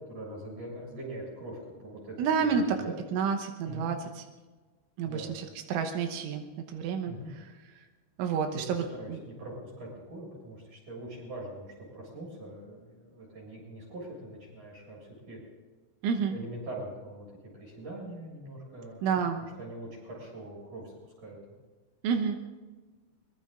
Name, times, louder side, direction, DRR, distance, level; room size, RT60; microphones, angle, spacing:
voice 1, 0.1-2.1 2.4-3.0 3.6-3.9 5.0-5.3 7.0-7.3 8.5-15.4 16.1-19.2 19.6-21.6, right 1 dB, 40° right, -3 dB, 8.0 m, -43 dB
voice 2, 2.2-2.6 3.1-4.0 5.0-7.1 8.2-8.8 9.1-9.2 16.0-16.4 19.0-19.5 22.0-22.4, right 6 dB, 90° right, 5 dB, 3.6 m, -29 dB
24.0 x 22.5 x 2.6 m, 1.3 s
omnidirectional pair, 5.4 m